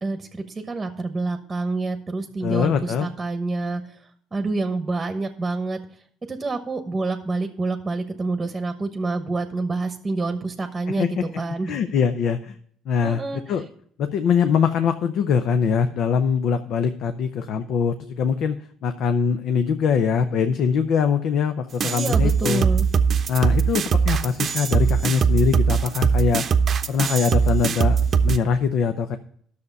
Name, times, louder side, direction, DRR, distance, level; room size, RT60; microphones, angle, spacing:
voice 1, 0.0-4.0 4.3-5.8 6.3-11.7 13.0-13.7 21.9-22.9, right 3 dB, 20° right, 7 dB, 1.1 m, -27 dB
voice 2, 2.4-3.1 10.9-11.3 11.6-12.6 12.9-13.7 14.0-18.6 18.8-22.6 23.3-26.4 26.9-29.2, left 6 dB, 65° left, 9 dB, 0.7 m, -22 dB
sound 1, 21.8-28.4, right 6 dB, 45° right, 0.7 m, -21 dB
10.5 x 6.7 x 5.4 m, 0.62 s
cardioid pair, 95°, 0 cm